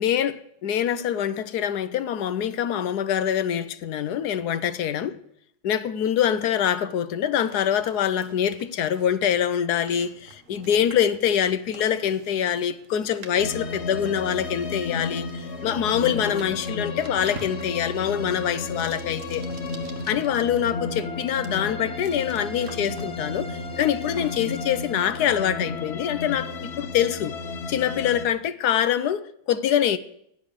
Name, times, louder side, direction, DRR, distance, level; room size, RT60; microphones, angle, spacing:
voice 1, 0.0-5.2 5.6-19.5 20.1-27.4 27.7-30.0, left 9 dB, 85° left, 1.4 m, -25 dB
sound 1, 7.4-27.2, right 4 dB, 55° right, 1.7 m, -49 dB
sound 2, 13.4-28.3, left 3 dB, 45° left, 1.2 m, -33 dB
14.5 x 10.5 x 6.7 m
omnidirectional pair, 1.7 m